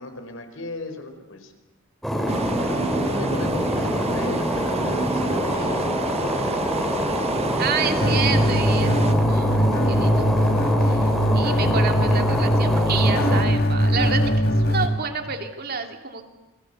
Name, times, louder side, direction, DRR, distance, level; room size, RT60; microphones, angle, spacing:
voice 1, 0.0-1.5 2.1-2.6 2.9-6.9 12.1-12.5, left 2 dB, 80° left, 6 dB, 4.8 m, -37 dB
sound 1, 2.0-13.4, equal, ahead, 3.9 m, -25 dB
sound 2, 2.3-9.1, right 3 dB, 30° right, 0.9 m, -30 dB
voice 2, 7.6-10.3 10.8-14.2 14.6-16.3, right 5 dB, 50° right, 5 dB, 2.7 m, -29 dB
sound 3, 8.0-14.9, equal, 55° left, 4.1 m, -21 dB
28.5 x 21.5 x 8.2 m, 1.0 s
head